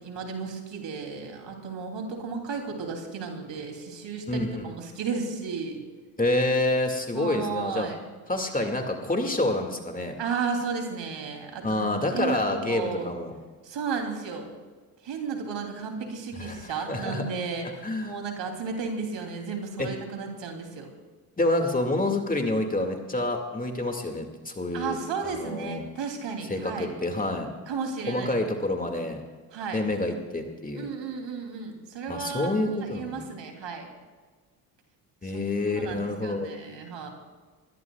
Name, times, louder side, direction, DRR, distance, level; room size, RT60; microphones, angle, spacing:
voice 1, 0.0-5.8 7.1-8.0 10.2-11.9 12.1-13.1 13.6-14.5 15.0-20.9 24.7-26.9 27.7-28.5 29.5-29.8 30.7-33.9 35.8-37.1, right 5 dB, 60° right, 3 dB, 3.2 m, -34 dB
voice 2, 4.3-4.6 6.2-7.9 8.3-10.1 11.6-13.3 16.4-17.3 17.8-18.2 19.8-19.9 21.4-25.0 25.2-25.8 26.5-27.5 28.1-29.2 29.7-30.9 32.1-33.2 35.2-36.5, left 2 dB, 15° left, 4 dB, 2.2 m, -28 dB
23.5 x 16.5 x 2.4 m, 1.4 s
hypercardioid pair, 55°, 49 cm